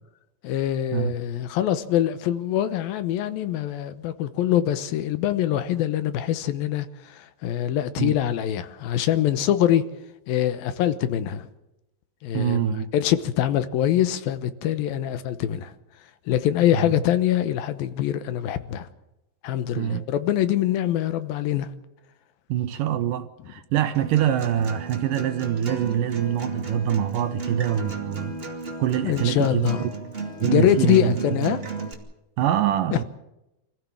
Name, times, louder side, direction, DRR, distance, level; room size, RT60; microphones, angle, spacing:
voice 1, 0.4-9.8 10.3-11.5 12.2-12.7 12.9-15.7 16.3-18.9 19.4-21.7 23.5-23.6 29.0-29.8 30.4-31.6 32.9-33.0, left 11 dB, 70° left, 2.6 m, -24 dB
voice 2, 12.3-12.9 16.7-16.9 19.8-20.0 22.5-28.4 28.8-29.7 30.4-31.1 32.4-33.0, right 10 dB, 75° right, 2.1 m, -24 dB
Acoustic guitar, 23.9-31.9, right 4 dB, 20° right, 1.7 m, -34 dB
25.5 x 15.5 x 7.3 m
omnidirectional pair, 4.7 m